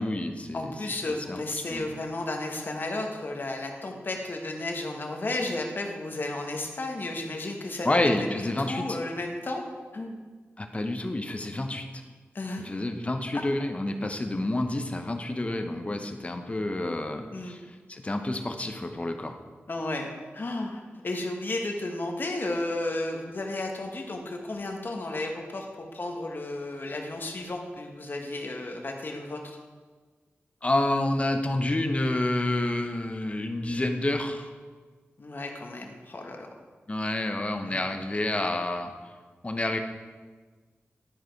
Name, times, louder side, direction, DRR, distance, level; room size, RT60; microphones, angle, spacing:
voice 1, 0.0-0.7 1.1-1.4 1.7-1.9 7.8-9.0 10.6-11.8 12.6-19.4 30.6-34.5 36.9-38.9 39.4-39.8, left 1 dB, 30° left, 5 dB, 0.8 m, -29 dB
voice 2, 0.5-8.0 8.4-9.6 9.9-10.2 12.3-12.7 17.3-17.6 19.7-20.1 20.3-25.6 25.9-29.6 35.2-36.5 37.7-37.9, left 2 dB, 50° left, 2 dB, 1.2 m, -33 dB
11.0 x 4.9 x 4.6 m, 1.4 s
wide cardioid pair, 70°, 4 cm